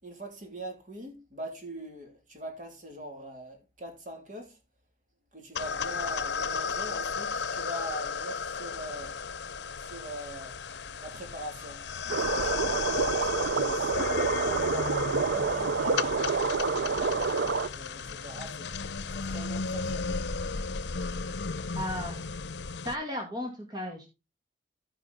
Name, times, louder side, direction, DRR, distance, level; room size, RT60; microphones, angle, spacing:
voice 1, 0.0-4.6 5.3-9.2 9.8-10.6 11.0-11.8 12.1-12.9 13.2-13.9 14.4-18.7 19.1-20.2, right 1 dB, 45° right, 3.2 m, -42 dB
sound 1, 5.6-23.0, left 5 dB, 80° left, 0.7 m, -34 dB
sound 2, 12.1-17.7, right 4 dB, 90° right, 0.6 m, -28 dB
voice 2, 21.7-22.2 22.8-24.1, left 1 dB, 25° right, 2.3 m, -35 dB
14.5 x 5.6 x 4.1 m
head